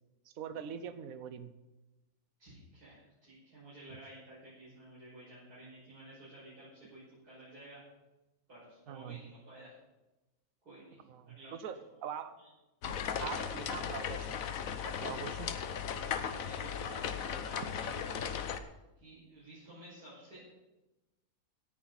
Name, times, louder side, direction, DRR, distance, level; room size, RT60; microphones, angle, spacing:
voice 1, 0.3-1.5 8.9-9.2 11.1-12.3 13.2-14.4 14.8-15.6, right 8 dB, 65° right, 11 dB, 1.3 m, -43 dB
voice 2, 2.4-7.8 8.5-9.7 10.6-11.5 12.4-12.5 13.1-13.4 13.7-13.8 15.0-15.4 15.9-18.3 19.0-20.4, right 1 dB, 85° right, -10 dB, 6.6 m, -53 dB
sound 1, 12.8-18.6, left 7 dB, 65° left, 1.3 m, -37 dB
17.5 x 10.5 x 4.1 m, 1.0 s
omnidirectional pair, 1.6 m